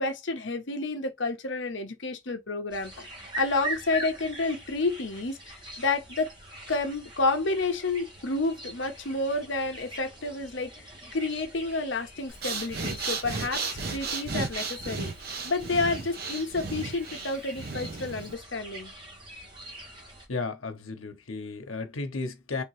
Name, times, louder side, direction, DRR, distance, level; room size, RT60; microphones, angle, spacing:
voice 1, 0.0-3.1 3.4-6.3 6.7-15.1 15.4-18.9, left 3 dB, 65° left, 0.8 m, -30 dB
sound 1, 2.7-20.3, right 1 dB, 25° right, 1.1 m, -43 dB
Breathing, 12.3-18.3, right 4 dB, 50° right, 0.8 m, -34 dB
voice 2, 20.3-22.6, left 3 dB, 90° left, 0.9 m, -34 dB
3.5 x 2.8 x 3.1 m
head